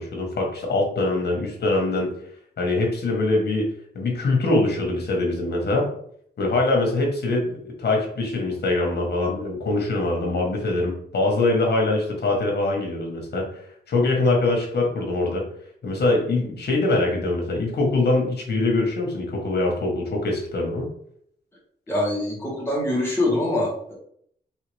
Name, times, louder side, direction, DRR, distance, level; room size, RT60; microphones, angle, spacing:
voice 1, 0.0-2.1 2.6-3.7 3.9-5.9 6.4-13.5 13.9-15.4 15.8-20.9, left 2 dB, 70° left, 0 dB, 1.4 m, -23 dB
voice 2, 21.9-23.9, left 1 dB, 15° left, -5 dB, 1.7 m, -24 dB
4.8 x 3.0 x 3.4 m, 0.66 s
wide cardioid pair, 140°, 18 cm